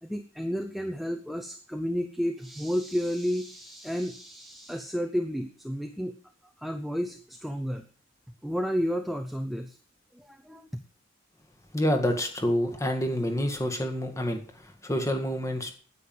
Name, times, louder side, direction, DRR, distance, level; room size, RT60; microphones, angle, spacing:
voice 1, 0.0-6.1 6.6-7.8 8.4-9.8 10.1-10.8, equal, ahead, 6 dB, 0.7 m, -31 dB
voice 2, 11.7-14.4 14.8-15.7, equal, 15° left, 5 dB, 1.8 m, -27 dB
9.6 x 9.3 x 7.8 m, 0.42 s
head